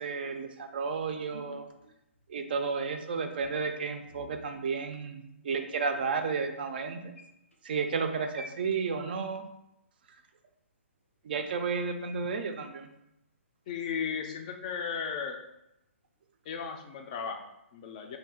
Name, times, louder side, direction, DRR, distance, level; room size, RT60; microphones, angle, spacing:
voice 1, 0.0-1.7 2.3-7.1 7.6-9.4 11.2-12.9, right 5 dB, 45° right, 6 dB, 0.4 m, -32 dB
sound 1, 1.3-2.6 3.4-4.4 5.9-6.1 7.2-7.6 8.3-8.7, equal, 85° left, 0.8 m, -49 dB
voice 2, 13.7-15.4 16.5-18.2, left 6 dB, 30° left, 4 dB, 0.4 m, -35 dB
2.6 x 2.6 x 3.6 m, 0.85 s
figure-of-eight pair, 130°, 7 cm